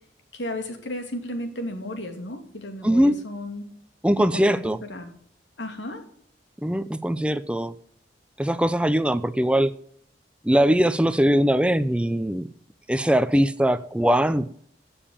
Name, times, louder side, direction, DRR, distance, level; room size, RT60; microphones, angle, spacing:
voice 1, 0.3-3.6 4.2-4.6 4.9-5.1 5.6-6.0, left 1 dB, 85° left, 6 dB, 2.8 m, -34 dB
voice 2, 2.8-3.2 4.0-4.8 6.6-7.7 8.4-9.7 10.4-12.5 12.9-14.5, equal, 5° right, 13 dB, 0.4 m, -21 dB
16.0 x 7.1 x 7.2 m, 0.63 s
head